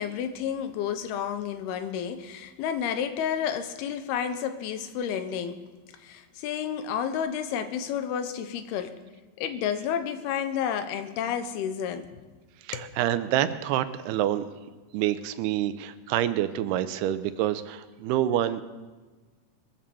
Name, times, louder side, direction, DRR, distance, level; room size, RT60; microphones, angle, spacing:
voice 1, 0.0-5.6 6.0-9.0 9.4-12.1 12.7-12.9, left 8 dB, 80° left, 9 dB, 2.9 m, -31 dB
voice 2, 12.6-14.5 14.9-18.6, right 12 dB, 85° right, 12 dB, 2.7 m, -27 dB
22.0 x 7.7 x 6.9 m, 1.3 s
omnidirectional pair, 4.6 m